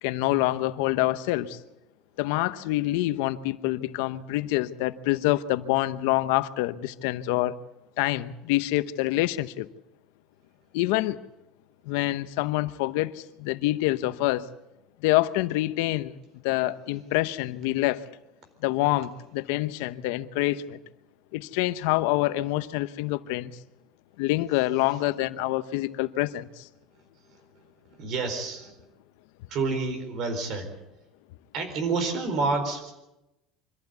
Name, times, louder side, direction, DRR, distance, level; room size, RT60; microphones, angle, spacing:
voice 1, 0.0-1.6 2.2-7.6 8.0-9.7 10.7-11.2 11.9-14.5 15.0-16.1 16.4-18.0 18.6-20.8 21.3-23.5 24.2-26.7, left 17 dB, 75° left, 0.9 m, -26 dB
voice 2, 28.0-28.7 29.5-30.7 31.5-32.9, right 4 dB, 45° right, 4.4 m, -28 dB
24.5 x 14.5 x 8.2 m
cardioid pair, 155°, 0 cm